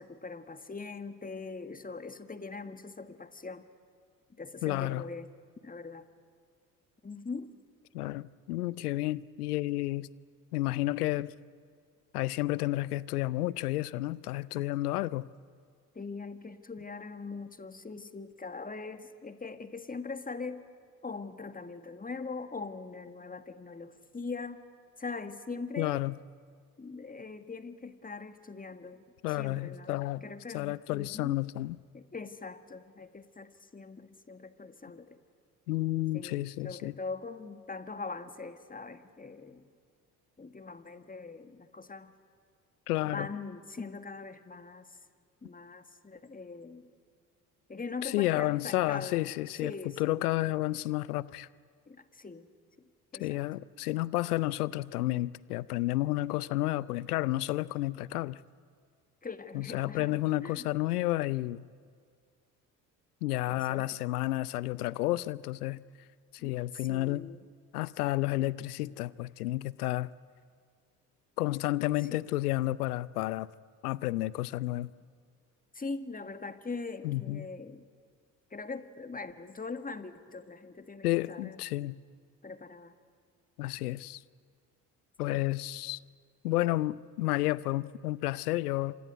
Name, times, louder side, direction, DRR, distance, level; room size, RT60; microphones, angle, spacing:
voice 1, 0.0-3.7 4.4-5.3 5.6-6.1 7.0-7.6 16.0-20.7 21.0-24.6 25.0-26.0 26.8-29.0 29.4-31.4 31.9-35.2 36.1-36.4 36.6-39.7 40.4-42.1 43.1-44.9 45.4-46.9 47.7-49.2 49.5-50.2 51.9-52.5 53.1-53.4 59.2-60.7 63.5-64.0 66.4-67.4 72.1-72.2 75.7-77.9 78.5-81.6 82.4-82.9 85.3-85.4, left 4 dB, 20° left, 10 dB, 1.7 m, -42 dB
voice 2, 4.6-5.0 7.9-10.1 10.5-11.3 12.1-15.3 25.8-26.2 29.2-30.2 30.5-31.8 35.7-36.9 42.9-43.3 48.0-49.7 50.0-51.5 53.2-58.4 59.5-61.6 63.2-65.8 66.3-67.3 67.7-70.1 71.4-73.5 73.8-74.9 77.0-77.5 81.0-82.0 83.6-84.2 85.2-86.0 86.4-88.9, left 17 dB, 85° left, 21 dB, 0.6 m, -31 dB
26.0 x 19.5 x 9.4 m, 2.1 s
hypercardioid pair, 55°, 44 cm